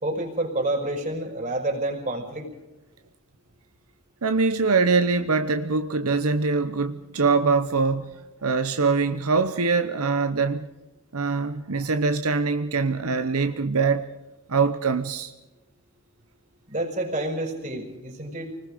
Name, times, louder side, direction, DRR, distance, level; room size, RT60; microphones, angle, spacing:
voice 1, 0.0-2.5 16.7-18.5, right 1 dB, 35° right, 5.3 m, -28 dB
voice 2, 4.2-10.7 11.1-14.1 14.5-15.3, right 4 dB, 80° right, 1.0 m, -23 dB
28.5 x 20.0 x 5.1 m
head